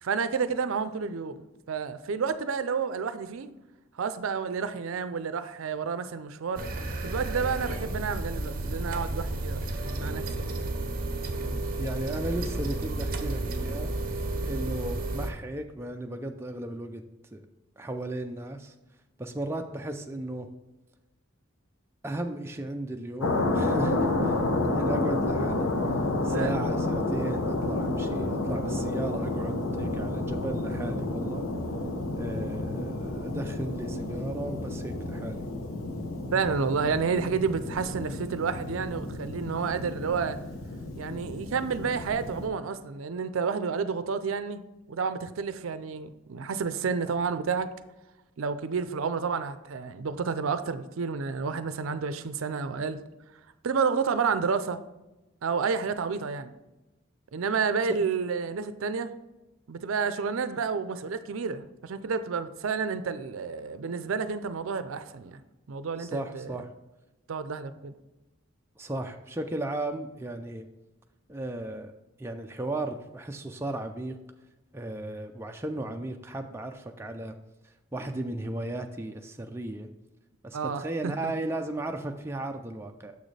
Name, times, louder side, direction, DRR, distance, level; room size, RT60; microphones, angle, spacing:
voice 1, 0.0-3.5 4.0-6.6 7.0-10.5 26.3-26.5 36.3-40.4 40.9-44.6 44.9-47.7 48.4-53.0 53.6-54.8 55.4-56.5 57.3-59.1 59.7-65.4 65.7-66.6 67.3-67.9 80.5-81.3, right 5 dB, 80° right, 0.5 m, -30 dB
sound 1, 6.6-15.3, right 2 dB, 45° right, 0.7 m, -32 dB
voice 2, 11.8-13.9 14.4-17.0 17.3-17.4 17.8-18.7 19.2-20.5 22.0-24.4 24.7-25.7 26.2-31.5 32.2-35.5 66.0-66.7 68.8-70.7 71.3-74.2 74.7-77.4 77.9-79.9 80.4-83.2, right 1 dB, 10° right, 0.4 m, -35 dB
sound 2, 23.2-42.5, left 2 dB, 85° left, 0.8 m, -30 dB
6.9 x 6.4 x 3.2 m
head